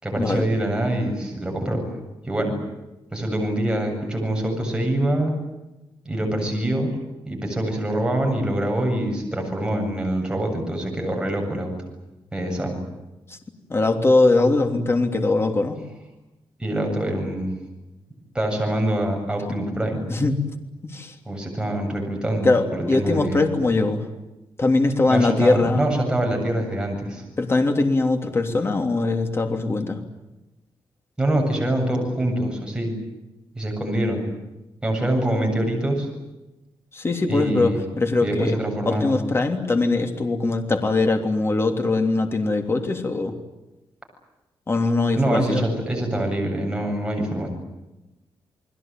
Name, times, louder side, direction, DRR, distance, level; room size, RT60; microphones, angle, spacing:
voice 1, 0.0-2.5 3.1-5.3 6.0-6.9 7.3-11.7 12.3-12.8 16.6-17.5 18.3-20.0 21.3-23.4 25.1-27.2 31.2-32.9 33.6-34.3 34.8-36.1 37.3-37.8 38.2-39.2 45.1-47.5, right 1 dB, 10° right, 1 dB, 7.8 m, -25 dB
voice 2, 13.7-15.8 20.1-20.4 20.8-21.1 22.4-24.0 24.6-25.9 27.4-30.0 36.9-38.5 38.9-43.3 44.7-45.7, left 2 dB, 30° left, 5 dB, 3.2 m, -21 dB
30.0 x 21.0 x 9.1 m, 1.0 s
wide cardioid pair, 135°, 9 cm